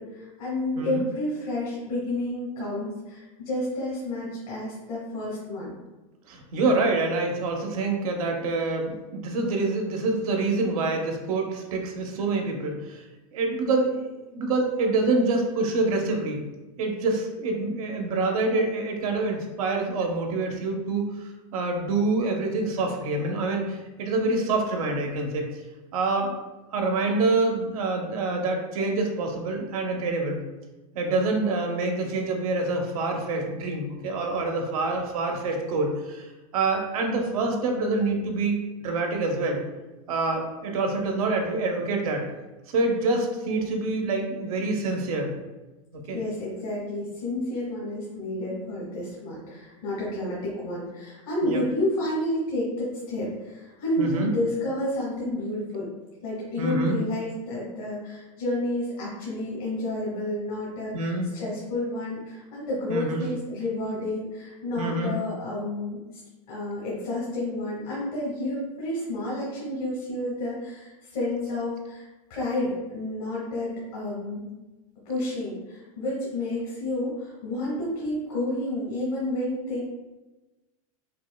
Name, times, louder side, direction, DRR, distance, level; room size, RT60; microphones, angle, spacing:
voice 1, 0.0-5.7 46.1-55.9 56.2-66.0 66.5-72.0 72.3-74.5 75.0-79.8, left 1 dB, 80° left, -5 dB, 1.3 m, -30 dB
voice 2, 6.3-13.0 13.3-16.4 16.8-25.5 25.9-26.3 26.7-30.4 30.9-39.6 40.1-42.3 42.7-45.3 45.9-46.2 51.4-51.6 54.0-54.3 56.6-57.0 60.9-61.3 62.9-63.2 64.8-65.1, right 3 dB, 80° right, 2 dB, 0.7 m, -26 dB
5.2 x 2.1 x 2.2 m, 1.1 s
supercardioid pair, 120°, 18 cm